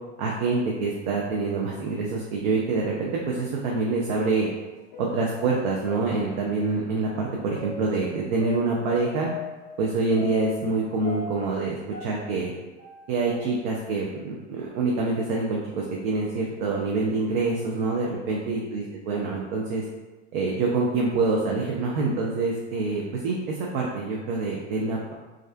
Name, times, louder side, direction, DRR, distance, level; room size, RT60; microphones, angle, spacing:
voice 1, 0.2-4.5 5.0-9.3 9.8-12.5 13.1-19.8 20.3-25.1, right 3 dB, 40° right, -2 dB, 0.4 m, -26 dB
sound 1, 4.6-6.8 7.5-10.8 11.0-13.4 13.7-13.8 14.5-14.6 15.4-15.6 16.2-16.3 17.2-17.5, left 4 dB, 35° left, 0.5 m, -40 dB
2.3 x 2.3 x 2.3 m, 1.2 s
figure-of-eight pair, 90°, 36 cm